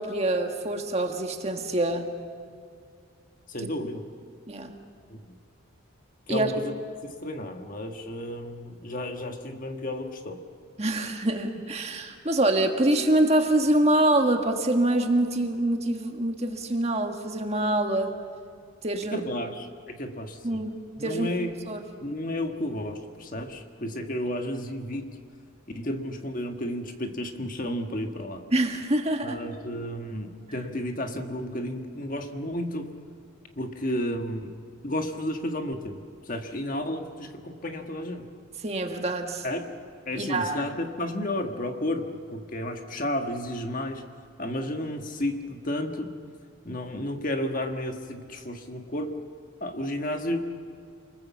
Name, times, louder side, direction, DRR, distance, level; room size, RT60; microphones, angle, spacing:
voice 1, 0.0-2.1 4.5-4.7 6.3-6.5 10.8-18.1 18.8-19.2 20.4-20.7 21.0-21.3 21.7-21.8 28.5-29.4 38.6-39.4 40.2-40.6, right 1 dB, 30° right, 4 dB, 1.7 m, -25 dB
voice 2, 3.5-4.0 5.1-5.4 6.3-6.7 7.0-10.4 19.1-20.6 21.0-21.6 22.0-25.2 25.7-28.4 29.2-33.0 33.6-34.5 34.8-38.3 39.4-39.7 40.0-44.0 44.4-46.1 46.6-49.2 49.6-50.5, left 1 dB, 40° left, 5 dB, 1.5 m, -32 dB
28.5 x 20.5 x 7.3 m, 2.2 s
head